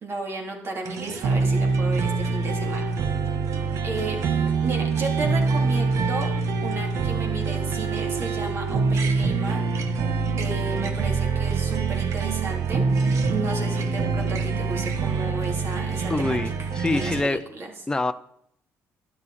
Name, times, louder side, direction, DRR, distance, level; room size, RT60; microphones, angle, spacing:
voice 1, 0.0-2.8 3.8-4.2 4.6-6.3 6.6-9.6 10.4-12.8 13.3-17.7, right 3 dB, 45° right, 3.4 m, -33 dB
sound 1, 0.8-17.2, right 4 dB, 65° right, 1.4 m, -25 dB
voice 2, 16.1-17.4 17.9-18.1, left 2 dB, 15° left, 0.7 m, -25 dB
12.0 x 12.0 x 4.3 m
cardioid pair, 110°, 6 cm